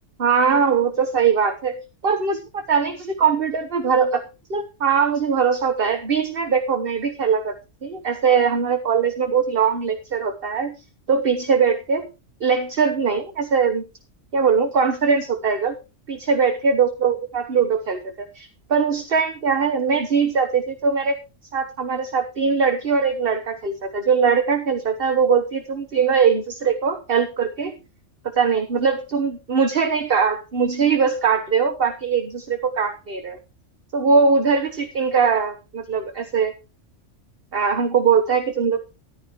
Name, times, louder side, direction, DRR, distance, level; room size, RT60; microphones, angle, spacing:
voice 1, 0.2-1.8 2.0-7.6 7.8-10.8 11.1-12.1 12.4-13.8 14.3-15.8 16.1-21.2 21.5-27.7 28.4-33.4 33.9-36.5 37.5-38.9, right 6 dB, 50° right, 7 dB, 1.4 m, -21 dB
14.0 x 11.5 x 3.1 m, 0.29 s
omnidirectional pair, 1.3 m